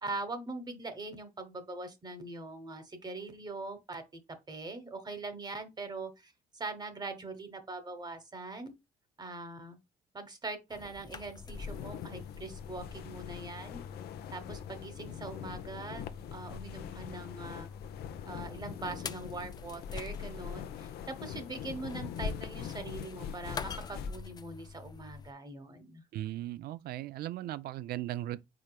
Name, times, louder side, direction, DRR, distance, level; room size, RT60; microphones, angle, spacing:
voice 1, 0.0-4.0 4.5-8.7 9.2-9.8 10.1-13.8 14.3-17.7 18.3-26.0, right 3 dB, 25° right, 1.0 m, -42 dB
sound 1, 10.7-25.3, left 5 dB, 25° left, 0.4 m, -47 dB
sound 2, 11.5-24.1, left 8 dB, 70° left, 0.6 m, -43 dB
voice 2, 26.1-28.4, right 14 dB, 65° right, 0.5 m, -37 dB
4.9 x 4.2 x 2.2 m
cardioid pair, 110°, 17 cm